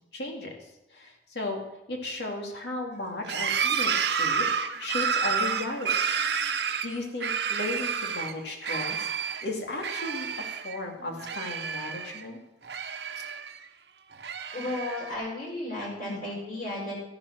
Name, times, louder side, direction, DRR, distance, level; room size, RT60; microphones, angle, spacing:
voice 1, 0.1-0.5 0.9-1.6 1.9-4.5 4.8-5.9 6.8-9.1 9.4-12.4 16.1-16.3, left 2 dB, 70° left, 1 dB, 3.2 m, -35 dB
sound 1, 3.2-8.3 8.6-9.5 9.8-10.8 11.0-12.2 12.6-13.6 14.1-15.1, right 6 dB, 75° right, 1.0 m, -30 dB
voice 2, 14.5-17.1, left 1 dB, 50° left, -7 dB, 6.5 m, -34 dB
14.0 x 10.5 x 6.3 m, 0.95 s
head